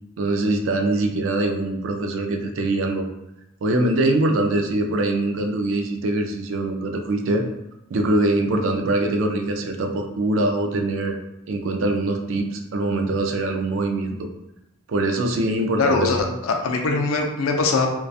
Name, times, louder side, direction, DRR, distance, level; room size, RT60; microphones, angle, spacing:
voice 1, 0.2-3.1 3.6-7.4 7.9-11.2 11.5-14.3 14.9-16.2, right 2 dB, 65° right, 4 dB, 0.3 m, -23 dB
voice 2, 15.8-17.9, left 3 dB, 75° left, 3 dB, 0.4 m, -22 dB
2.6 x 2.2 x 2.3 m, 0.88 s
head